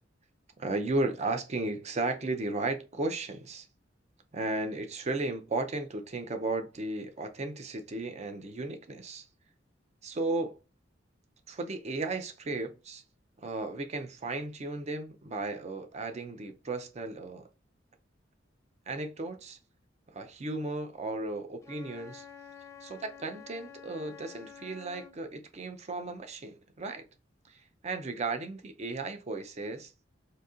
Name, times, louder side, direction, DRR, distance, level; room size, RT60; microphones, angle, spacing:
voice 1, 0.6-3.7 4.3-9.2 10.0-10.6 11.5-13.0 13.4-17.5 18.9-19.6 20.1-22.3 22.8-27.0 27.5-29.9, right 2 dB, 35° right, 0.5 m, -35 dB
Wind instrument woodwind instrument, 21.6-25.2, left 7 dB, 15° left, 0.4 m, -49 dB
4.0 x 2.7 x 2.4 m
head